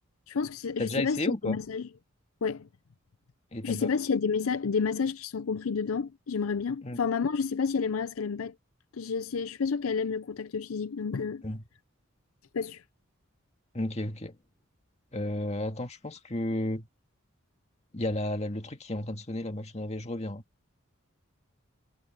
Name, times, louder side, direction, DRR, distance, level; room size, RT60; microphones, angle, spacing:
voice 1, 0.3-1.2 1.4-1.9 2.4-2.7 3.6-8.5 8.9-11.4 12.5-12.8, left 5 dB, 90° left, 0.5 m, -30 dB
voice 2, 0.8-1.6 3.5-3.9 6.8-7.0 11.4-11.6 13.7-14.4 15.1-16.9 17.9-20.4, left 1 dB, 30° left, 2.0 m, -33 dB
head